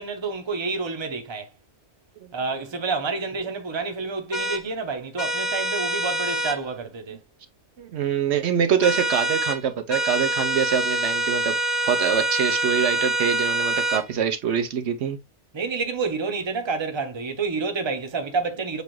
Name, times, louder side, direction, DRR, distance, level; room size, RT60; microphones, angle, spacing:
voice 1, 0.0-1.5 2.3-7.2 15.5-18.8, right 4 dB, 25° right, 0.8 m, -29 dB
sound 1, 4.3-4.6 5.2-6.6 8.8-9.6 9.9-14.0, right 2 dB, 40° left, 0.9 m, -25 dB
voice 2, 7.8-11.5 11.9-15.2, right 7 dB, 70° right, 0.9 m, -24 dB
6.7 x 2.4 x 3.0 m
omnidirectional pair, 1.2 m